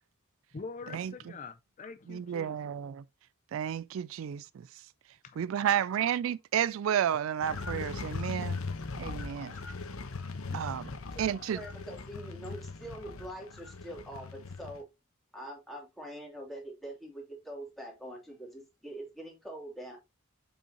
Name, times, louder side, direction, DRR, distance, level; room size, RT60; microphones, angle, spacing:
voice 1, 0.5-2.6 5.2-5.7 9.3-9.6 10.3-10.6, left 4 dB, 35° left, 0.4 m, -45 dB
voice 2, 2.1-3.0 3.5-4.7 5.4-8.6 9.0-9.5 10.5-10.9 11.2-11.6, right 9 dB, 70° right, 0.3 m, -31 dB
sound 1, 7.4-14.8, left 4 dB, 85° left, 1.0 m, -39 dB
voice 3, 11.2-14.9 15.3-20.0, right 1 dB, ahead, 2.7 m, -44 dB
7.1 x 5.5 x 2.9 m
head